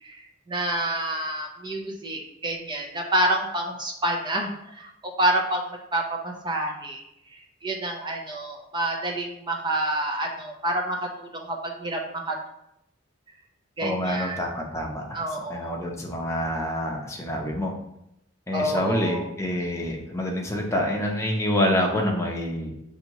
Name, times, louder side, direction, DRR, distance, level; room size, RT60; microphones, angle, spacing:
voice 1, 0.0-7.0 7.3-12.0 12.3-12.4 13.8-14.4 15.1-15.8 18.5-19.2, right 1 dB, 25° right, 0 dB, 0.6 m, -28 dB
voice 2, 13.8-15.2 15.5-17.8 18.5-22.7, left 1 dB, 15° left, 0 dB, 0.7 m, -27 dB
6.5 x 2.7 x 2.9 m, 0.80 s
head